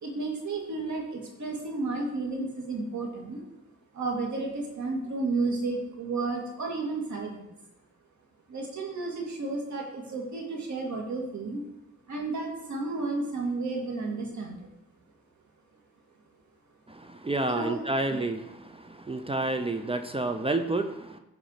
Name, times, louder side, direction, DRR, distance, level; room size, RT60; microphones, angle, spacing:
voice 1, 0.0-3.4 3.9-7.5 8.5-11.6 12.1-14.7 17.5-17.8 18.1-18.2, right 3 dB, 75° right, 0 dB, 2.4 m, -32 dB
voice 2, 17.2-18.4 19.1-21.2, right 2 dB, 20° right, 8 dB, 0.5 m, -29 dB
10.5 x 4.9 x 6.6 m, 0.93 s
wide cardioid pair, 125°, 29 cm